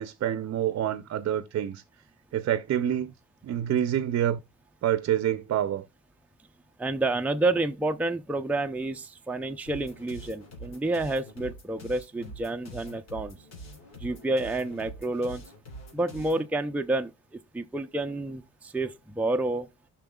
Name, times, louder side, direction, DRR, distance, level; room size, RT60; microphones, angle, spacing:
voice 1, 0.0-1.8 2.3-3.1 3.4-4.4 4.8-5.8, right 10 dB, 55° right, 0.6 m, -27 dB
voice 2, 6.8-13.4 14.0-15.4 15.9-17.1 17.5-19.7, right 2 dB, 5° right, 0.6 m, -29 dB
sound 1, 9.7-16.5, right 1 dB, 60° left, 3.3 m, -45 dB
12.5 x 5.8 x 2.3 m
cardioid pair, 90°, 30 cm